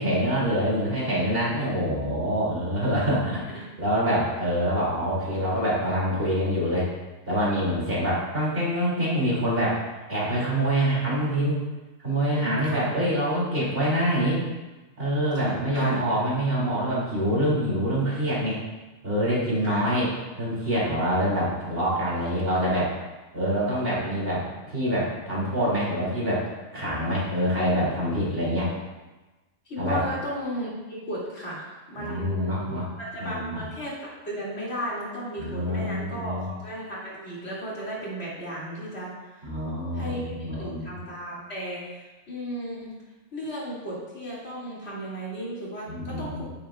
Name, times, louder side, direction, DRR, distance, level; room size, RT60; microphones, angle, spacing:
voice 1, 0.0-6.9 7.3-9.8 10.1-11.6 12.0-14.4 15.0-18.6 19.0-20.1 20.4-22.9 23.3-24.4 24.7-28.7 29.8-30.0 32.0-32.8 33.2-33.6 35.4-36.5 39.4-40.9 45.9-46.4, equal, 50° right, -6 dB, 3.0 m, -25 dB
voice 2, 12.3-12.9 15.4-16.0 19.6-19.9 29.7-39.5 39.9-42.9 43.3-46.4, equal, 60° left, -7 dB, 2.8 m, -35 dB
9.9 x 9.0 x 2.4 m, 1.2 s
omnidirectional pair, 1.2 m